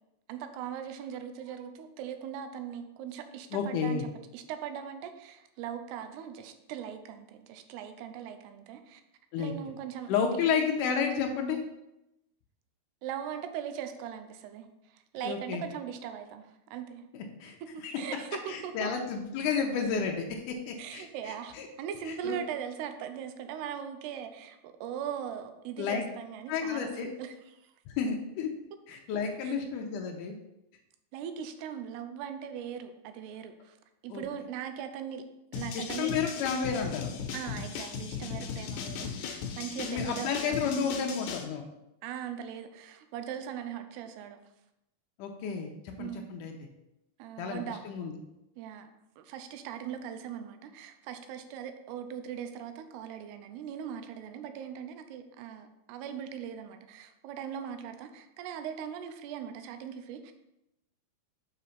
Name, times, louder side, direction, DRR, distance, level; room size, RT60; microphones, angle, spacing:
voice 1, 0.3-4.1 4.3-9.0 9.4-10.4 13.0-17.1 17.6-18.9 20.8-27.7 29.4-29.5 31.1-33.8 34.0-35.2 35.5-36.2 37.3-40.6 42.0-44.4 46.0-46.3 47.2-47.8 48.6-48.9 49.2-60.3, right 9 dB, 85° right, 8 dB, 2.7 m, -40 dB
voice 2, 3.5-4.0 9.3-9.5 10.1-11.6 15.2-15.6 17.1-17.6 17.8-17.9 18.5-21.7 22.1-22.4 25.8-26.0 26.5-27.1 28.0-28.5 28.9-30.4 34.1-34.2 35.7-37.1 39.8-41.6 45.2-46.5 47.4-48.2, left 6 dB, 90° left, 2 dB, 1.8 m, -31 dB
sound 1, 35.5-41.5, left 6 dB, 75° left, 2.4 m, -37 dB
6.5 x 5.1 x 5.7 m, 0.88 s
omnidirectional pair, 4.6 m